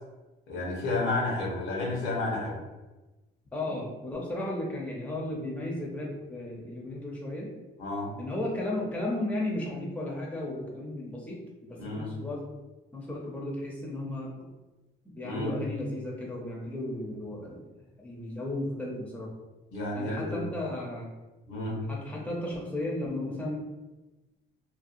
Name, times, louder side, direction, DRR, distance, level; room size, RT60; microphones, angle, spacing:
voice 1, 0.5-2.6 7.8-8.1 11.8-12.1 15.2-15.5 19.7-20.4 21.5-21.8, left 2 dB, 85° left, -3 dB, 0.9 m, -31 dB
voice 2, 3.5-7.5 8.2-12.5 12.9-14.3 15.0-17.7 18.0-19.3 19.9-21.1 21.9-23.6, left 1 dB, 5° left, -2 dB, 0.6 m, -34 dB
2.7 x 2.2 x 2.5 m, 1.1 s
cardioid pair, 90°, 20 cm